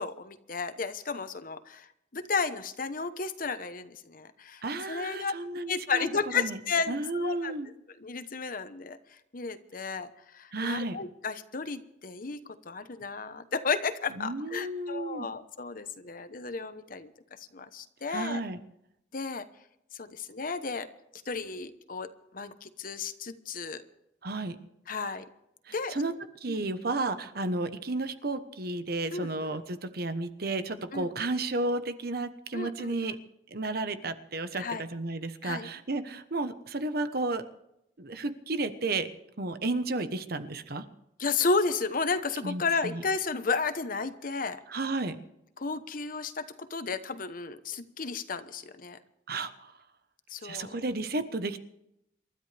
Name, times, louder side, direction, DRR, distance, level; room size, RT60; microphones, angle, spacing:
voice 1, 0.0-5.3 5.7-7.5 8.0-17.1 17.5-18.4 19.1-19.5 19.9-20.9 21.3-23.8 24.9-25.3 25.7-26.0 26.5-26.6 29.1-29.6 30.9-31.1 32.5-33.2 34.6-34.8 35.4-35.7 41.2-44.6 45.6-46.4 46.7-49.0 50.3-50.7, left 4 dB, 50° left, 11 dB, 1.0 m, -33 dB
voice 2, 4.6-6.6 6.9-7.7 10.5-11.0 14.1-15.3 18.1-18.6 24.2-24.6 25.7-26.1 26.4-33.2 33.5-37.4 38.0-39.1 39.4-40.8 42.4-43.0 44.7-45.2 49.3-49.7 50.4-51.6, right 2 dB, 60° right, 10 dB, 1.1 m, -32 dB
28.0 x 13.0 x 3.4 m, 0.80 s
head